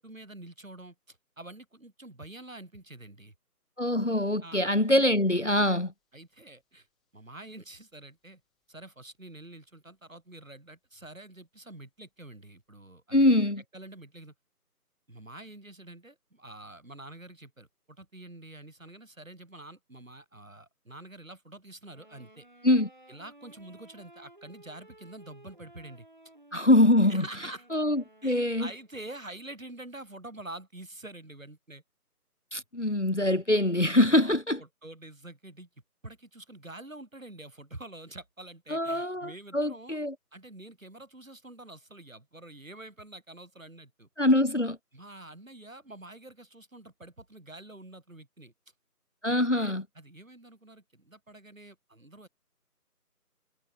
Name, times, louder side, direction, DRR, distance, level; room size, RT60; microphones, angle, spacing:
voice 1, 0.0-3.3 4.4-4.6 6.1-6.9 7.1-8.4 8.7-13.3 13.7-14.3 15.1-22.5 23.1-26.1 27.1-27.7 28.2-31.8 34.0-35.7 36.0-40.0 40.3-44.1 44.9-48.5 49.2-52.3, right 2 dB, 55° right, 3.4 m, -47 dB
voice 2, 3.8-5.9 13.1-13.6 22.6-22.9 26.5-27.2 27.7-28.7 32.5-34.6 38.7-40.1 44.2-44.8 49.2-49.8, left 1 dB, 50° left, 0.5 m, -24 dB
sound 1, 5.0-12.7, left 10 dB, ahead, 4.7 m, -91 dB
sound 2, 21.9-29.0, right 1 dB, 30° right, 3.4 m, -56 dB
figure-of-eight pair, 175°, 46 cm